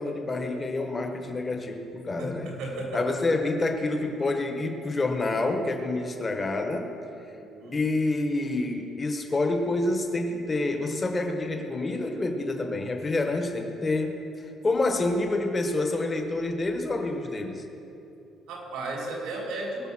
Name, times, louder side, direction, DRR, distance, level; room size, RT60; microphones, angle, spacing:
voice 1, 0.0-2.5 2.9-6.9 7.7-17.6, left 2 dB, 20° left, 4 dB, 1.1 m, -28 dB
voice 2, 2.2-3.0 7.3-7.8 18.5-19.9, right 2 dB, 85° right, -2 dB, 3.5 m, -34 dB
20.5 x 6.9 x 6.1 m, 2.9 s
cardioid pair, 180°, 0 cm